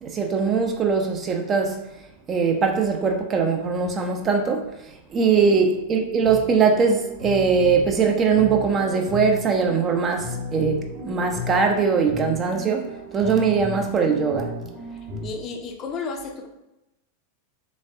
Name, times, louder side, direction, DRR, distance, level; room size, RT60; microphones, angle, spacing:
voice 1, 0.0-1.8 2.3-14.5, right 5 dB, 25° right, 0.5 m, -21 dB
voice 2, 5.2-5.6 14.9-16.5, left 4 dB, 30° left, 0.6 m, -34 dB
sound 1, 6.2-15.3, left 2 dB, 50° right, 0.9 m, -35 dB
4.0 x 3.4 x 2.5 m
figure-of-eight pair, 90°, 0 cm